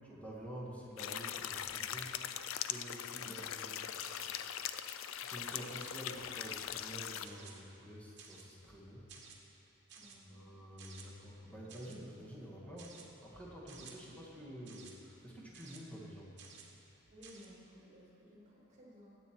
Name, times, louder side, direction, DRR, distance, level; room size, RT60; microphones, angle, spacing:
voice 1, 0.0-2.2 2.6-3.9 5.2-9.2 10.1-16.3, equal, 5° left, -5 dB, 1.9 m, -49 dB
sound 1, 1.0-7.3, left 10 dB, 75° left, 0.4 m, -41 dB
voice 2, 3.2-3.5 9.9-10.4 17.1-19.2, equal, 35° right, -5 dB, 2.8 m, -57 dB
sound 2, 4.0-4.4 4.7-5.0 5.6-6.0 6.4-6.7 7.2-7.6 8.2-8.5 9.1-9.4 9.9-10.2 10.8-11.1 11.7-12.0 12.8-13.1 13.7-14.0 14.7-14.9 15.5-15.8 16.4-16.7 17.2-17.5, right 6 dB, 55° right, 1.3 m, -55 dB
16.0 x 8.6 x 4.6 m, 2.9 s
head